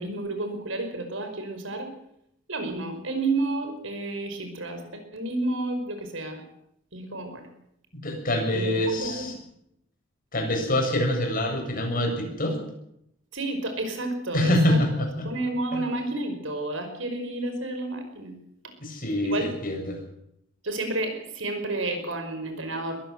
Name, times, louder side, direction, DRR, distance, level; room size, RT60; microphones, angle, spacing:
voice 1, 0.0-1.9 2.5-6.4 6.9-7.5 8.5-9.3 13.3-14.8 15.2-18.4 18.6-18.7 19.2-19.5 20.6-23.0, right 2 dB, 75° right, 6 dB, 5.3 m, -31 dB
voice 2, 7.9-9.3 10.3-12.6 14.3-15.3 15.7-15.8 18.8-20.0, left 1 dB, 45° left, 2 dB, 7.3 m, -25 dB
22.0 x 15.5 x 7.7 m, 0.77 s
head